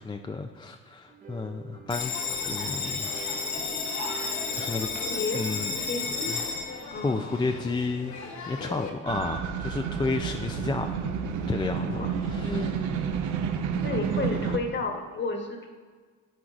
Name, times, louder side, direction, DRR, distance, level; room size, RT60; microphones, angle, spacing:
voice 1, 0.0-2.2 2.5-3.1 4.5-4.9 5.3-5.7 6.3-6.4 7.0-8.2 8.5-11.1 11.5-12.7, left 3 dB, 15° left, 4 dB, 0.4 m, -31 dB
sound 1, 1.1-6.9, right 5 dB, 30° right, 0.9 m, -46 dB
Bell, 1.9-8.9, left 5 dB, 70° left, 1.1 m, -33 dB
voice 2, 4.9-5.4 5.7-6.3 6.8-7.4 11.9-12.1 12.4-12.8 13.8-15.7, left 3 dB, 40° left, 3 dB, 1.2 m, -32 dB
sound 2, 9.1-14.6, right 7 dB, 85° right, 0.6 m, -30 dB
13.5 x 4.6 x 2.5 m, 1.5 s
cardioid pair, 90°, 30 cm